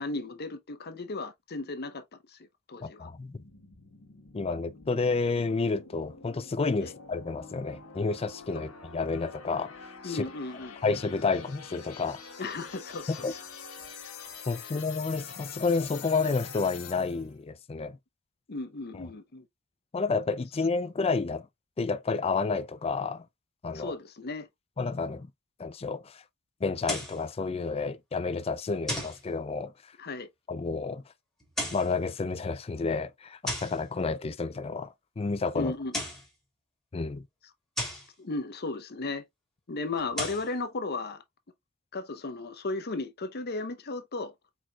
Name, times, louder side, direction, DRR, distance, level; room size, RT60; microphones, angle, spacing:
voice 1, 0.0-2.0 2.3-2.4 2.7-3.1 6.8-6.9 10.0-10.7 12.4-13.4 18.5-19.5 23.7-24.5 30.0-30.3 35.5-35.9 38.2-39.2 39.7-41.2 41.9-44.3, left 3 dB, 50° left, 0.8 m, -35 dB
voice 2, 2.8-3.4 4.3-9.7 10.0-10.2 10.8-12.2 13.1-13.3 14.5-18.0 18.9-19.1 19.9-21.5 21.8-23.3 23.6-23.9 24.8-25.3 25.6-26.2 26.6-29.7 30.5-31.0 31.7-35.7 36.9-37.3, left 4 dB, 25° left, 0.4 m, -30 dB
sound 1, 3.3-17.3, left 6 dB, 90° left, 1.5 m, -46 dB
sound 2, 26.8-27.2 28.9-29.2 31.4-31.9 33.5-33.8 35.7-36.3 37.8-38.1 40.0-40.5, left 1 dB, ahead, 1.9 m, -34 dB
4.4 x 4.3 x 2.3 m
head